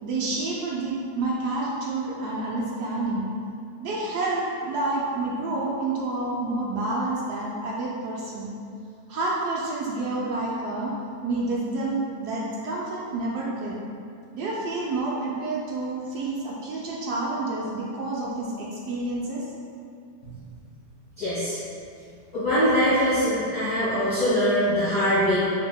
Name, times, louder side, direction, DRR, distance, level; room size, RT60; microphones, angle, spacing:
voice 1, 0.0-3.3 3.8-8.5 9.1-10.9 11.2-13.8 14.3-19.5, right 2 dB, 75° right, -4 dB, 1.0 m, -29 dB
voice 2, 21.2-21.6 22.3-25.4, equal, 30° left, -13 dB, 1.1 m, -22 dB
6.4 x 2.7 x 2.3 m, 2.4 s
omnidirectional pair, 1.8 m